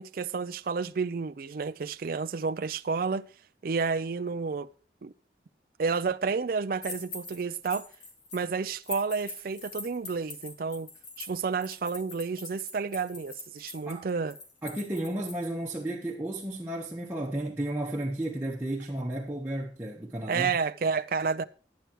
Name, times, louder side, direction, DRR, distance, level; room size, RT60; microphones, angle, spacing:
voice 1, 0.0-3.2 3.6-4.7 5.0-5.1 5.8-7.9 8.3-10.9 11.2-14.4 20.3-21.4, right 5 dB, 55° right, 0.4 m, -30 dB
sound 1, 6.8-8.5 8.8-15.4, left 3 dB, 75° left, 2.4 m, -43 dB
voice 2, 14.6-20.5, right 1 dB, 15° right, 1.1 m, -33 dB
10.5 x 9.1 x 4.5 m
head